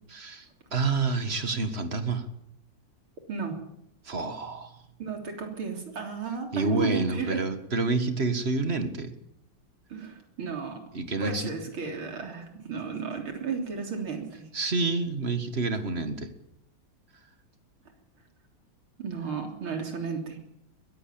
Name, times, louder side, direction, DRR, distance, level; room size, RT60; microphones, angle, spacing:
voice 1, 0.1-2.3 4.0-4.8 6.5-9.1 10.9-11.5 14.5-16.3, right 3 dB, 30° right, 9 dB, 1.8 m, -28 dB
voice 2, 5.0-7.5 9.9-10.8 11.2-14.5 19.0-20.4, right 5 dB, 85° right, 4 dB, 4.2 m, -33 dB
22.0 x 15.0 x 8.6 m, 0.77 s
omnidirectional pair, 2.3 m